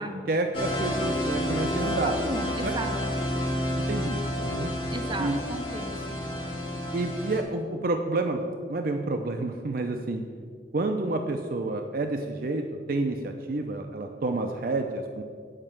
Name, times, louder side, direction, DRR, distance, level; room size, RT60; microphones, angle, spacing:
voice 1, 0.3-2.2 2.6-2.7 3.9-4.7 5.2-5.4 6.9-8.4 8.7-10.2 10.7-12.6 12.9-15.2, right 2 dB, 55° right, 5 dB, 0.5 m, -29 dB
sound 1, 0.5-7.4, left 1 dB, 30° left, 1.7 m, -30 dB
voice 2, 2.0-3.3 4.9-5.9, right 2 dB, 25° right, 3 dB, 0.9 m, -35 dB
8.9 x 5.3 x 7.4 m, 2.1 s
head